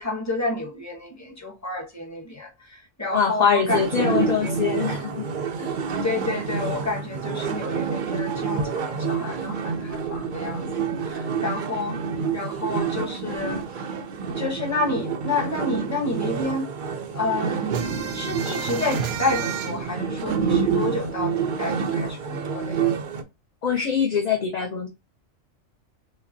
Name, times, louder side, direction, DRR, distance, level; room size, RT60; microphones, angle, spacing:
voice 1, 0.0-4.8 6.0-10.7 11.0-12.0 12.3-13.6 14.3-16.7 17.1-17.8 18.1-22.9, left 3 dB, 15° left, 0.9 m, -30 dB
voice 2, 3.1-5.3 5.6-5.7 23.6-24.9, left 7 dB, 45° left, 0.6 m, -23 dB
sound 1, 3.7-23.2, right 6 dB, 60° right, 0.5 m, -28 dB
sound 2, 17.7-21.0 21.4-21.5 21.8-22.8, right 8 dB, 75° right, 0.9 m, -32 dB
5.0 x 2.1 x 2.6 m
omnidirectional pair, 1.3 m